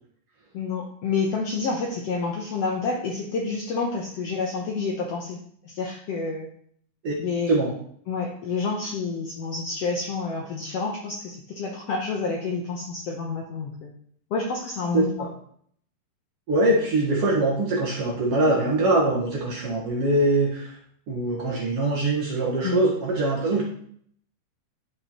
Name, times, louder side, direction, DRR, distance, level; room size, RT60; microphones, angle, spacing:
voice 1, 0.5-5.4 5.6-6.5 7.2-7.6 8.1-13.9 14.3-15.3 22.6-22.8, left 4 dB, 70° left, -1 dB, 1.5 m, -29 dB
voice 2, 14.9-15.3 16.5-20.7 21.1-23.6, right 2 dB, 55° right, -2 dB, 1.8 m, -23 dB
11.5 x 4.8 x 3.0 m, 0.62 s
omnidirectional pair, 3.8 m